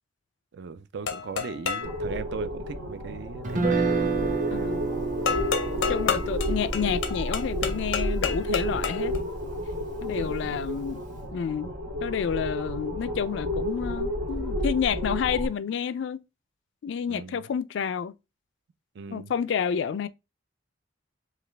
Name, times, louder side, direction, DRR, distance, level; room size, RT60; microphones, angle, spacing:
voice 1, 0.5-4.2 10.2-10.6 17.1-17.4 18.9-19.3, right 5 dB, 60° right, 0.4 m, -38 dB
sound 1, 1.1-2.0 5.3-9.2, left 6 dB, 85° left, 0.7 m, -30 dB
sound 2, 1.8-15.5, equal, 85° right, 1.2 m, -32 dB
Guitar, 3.4-9.6, right 4 dB, 40° right, 0.8 m, -30 dB
voice 2, 4.5-4.9 5.9-9.1 10.0-11.0 11.3-11.7 12.0-16.2 16.8-18.1 19.1-20.1, left 7 dB, 65° left, 0.3 m, -29 dB
4.8 x 2.4 x 3.3 m
head